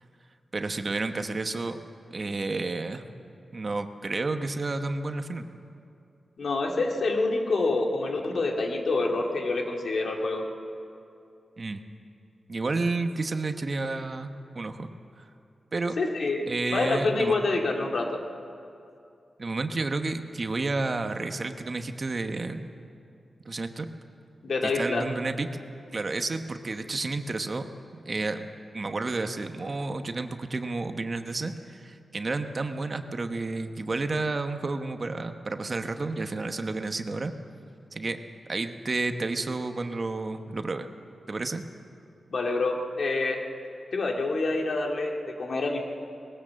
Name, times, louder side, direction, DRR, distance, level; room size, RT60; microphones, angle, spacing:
voice 1, 0.5-1.8 2.1-3.0 3.5-5.5 11.6-11.8 12.5-14.9 15.2-15.3 15.7-16.0 16.5-17.3 19.4-22.7 23.4-23.9 24.6-25.5 25.9-27.7 28.0-28.5 28.7-37.3 37.9-38.2 38.5-40.9 41.3-41.6, right 3 dB, 40° right, 7 dB, 1.0 m, -31 dB
voice 2, 6.4-10.4 16.0-18.2 24.4-25.1 42.3-43.4 43.9-45.8, left 3 dB, 65° left, 1 dB, 2.2 m, -27 dB
20.0 x 17.0 x 7.5 m, 2.6 s
wide cardioid pair, 110°, 0 cm